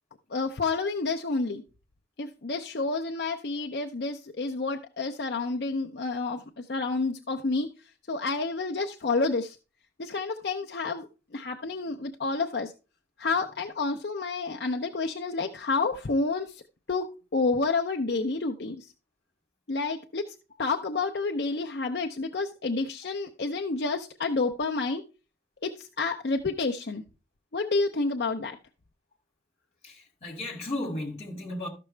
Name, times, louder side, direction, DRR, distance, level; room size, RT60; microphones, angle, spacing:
voice 1, 0.3-1.6 2.2-7.7 8.1-9.6 10.0-11.1 11.3-12.7 13.2-16.6 16.9-18.9 19.7-25.0 25.6-27.0 27.5-28.6, left 3 dB, 65° left, 0.6 m, -29 dB
voice 2, 29.8-31.7, left 1 dB, 35° left, 2.4 m, -35 dB
13.0 x 6.0 x 3.3 m
head